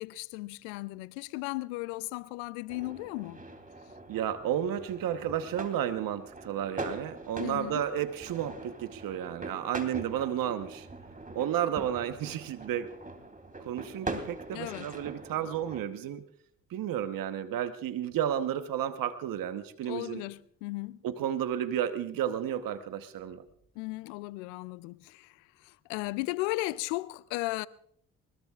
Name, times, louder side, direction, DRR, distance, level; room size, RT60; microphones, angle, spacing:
voice 1, 0.0-3.4 7.4-7.8 14.5-14.9 19.8-21.0 23.8-25.3 25.6-27.7, left 21 dB, 85° left, 0.5 m, -36 dB
sound 1, 2.7-15.8, right 2 dB, 25° right, 3.1 m, -43 dB
voice 2, 4.1-10.9 11.3-12.9 13.6-16.2 16.7-20.2 21.0-23.4, right 10 dB, 70° right, 1.1 m, -32 dB
22.5 x 20.5 x 2.4 m
hypercardioid pair, 45°, 35 cm